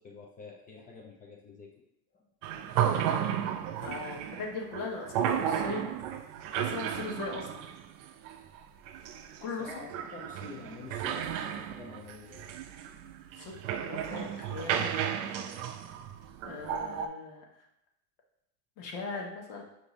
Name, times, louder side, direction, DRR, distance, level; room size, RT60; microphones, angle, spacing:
voice 1, 0.0-1.8 2.1-2.3 9.6-12.5, left 4 dB, 20° left, 0 dB, 0.3 m, -48 dB
sound 1, 2.4-17.1, right 9 dB, 60° right, 0.5 m, -33 dB
voice 2, 3.8-5.9 6.6-7.6 9.4-9.7 13.3-13.5 13.9-14.9 16.4-17.4 18.8-19.6, left 4 dB, 65° left, 1 dB, 1.2 m, -39 dB
5.2 x 2.7 x 3.0 m, 0.81 s
supercardioid pair, 100°, 49 cm